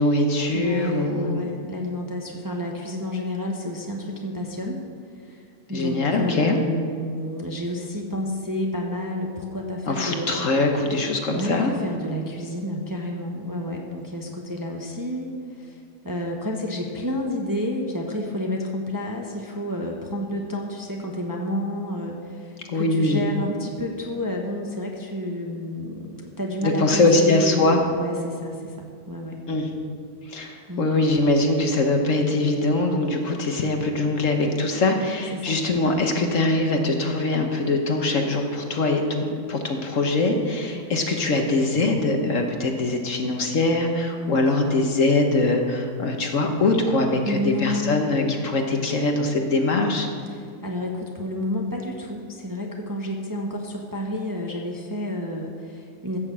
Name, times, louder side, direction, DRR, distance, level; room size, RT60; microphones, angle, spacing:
voice 1, 0.0-1.4 5.7-6.6 9.9-11.7 22.7-23.2 26.6-27.8 29.5-29.7 30.3-50.1, left 2 dB, 55° left, 3 dB, 1.4 m, -22 dB
voice 2, 0.5-4.8 5.2-5.4 5.7-10.5 11.3-15.8 16.0-29.4 30.7-30.9 35.3-35.6 47.2-48.0 50.3-56.2, left 1 dB, 15° right, 0 dB, 0.9 m, -30 dB
15.0 x 6.5 x 7.3 m, 2.3 s
omnidirectional pair, 1.7 m